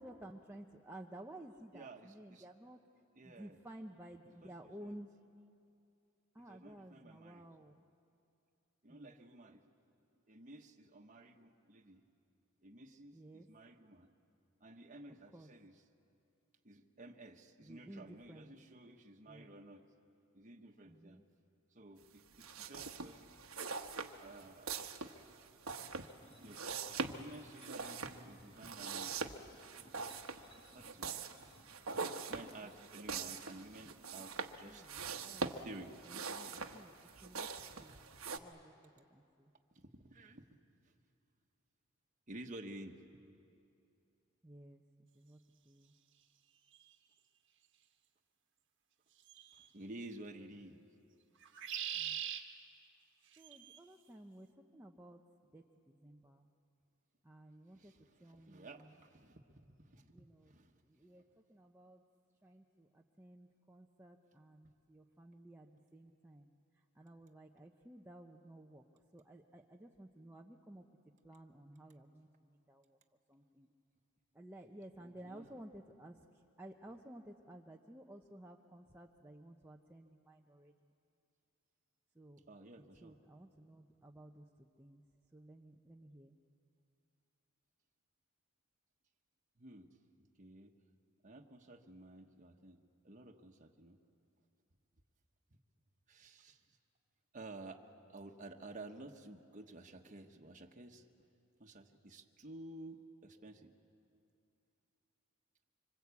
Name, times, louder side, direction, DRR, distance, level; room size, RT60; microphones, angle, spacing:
voice 1, 0.0-2.8 3.2-5.1 6.3-7.8 8.9-9.1 13.1-13.5 15.3-15.5 17.6-18.5 19.2-19.5 20.9-21.2 31.4-31.7 32.6-32.7 33.0-33.4 34.6-35.5 36.0-37.0 37.2-37.5 37.8-38.0 38.3-39.5 44.4-44.8 45.1-45.4 45.7-45.9 51.9-52.3 53.4-54.5 54.7-55.2 55.5-56.5 57.2-57.9 58.2-58.9 60.0-60.5 60.8-61.2 61.5-62.0 62.4-66.5 67.0-68.8 69.1-70.8 71.2-73.0 73.3-73.7 74.3-76.2 76.6-80.7 82.2-82.4 83.0-84.5 84.8-85.0 85.3-86.3, right 1 dB, 10° right, 0 dB, 0.8 m, -55 dB
voice 2, 1.7-2.5 3.1-3.6 4.3-4.9 6.5-7.5 8.8-9.6 10.3-12.0 12.6-14.1 14.6-15.8 16.6-19.8 20.3-21.2 21.7-23.2 24.2-24.8 26.4-29.3 30.2-30.3 30.7-31.2 32.3-34.9 35.1-35.9 39.7-40.6 42.3-43.0 49.5-50.8 57.7-59.5 59.8-60.1 60.4-60.8 61.2-61.3 75.0-75.5 82.5-83.2 89.6-89.9 90.4-90.7 91.2-92.8 93.0-94.0 96.1-96.6 97.3-97.8 98.1-101.0 101.6-103.7, right 2 dB, 35° right, 2 dB, 1.3 m, -53 dB
sound 1, 22.3-38.4, right 4 dB, 75° right, 1.2 m, -43 dB
sound 2, 26.0-32.8, left 2 dB, 30° left, 1.3 m, -64 dB
sound 3, 46.7-46.8 49.3-49.7 51.4-52.4 53.3-53.8, right 10 dB, 60° right, 1.4 m, -41 dB
25.5 x 25.5 x 8.4 m, 2.6 s
head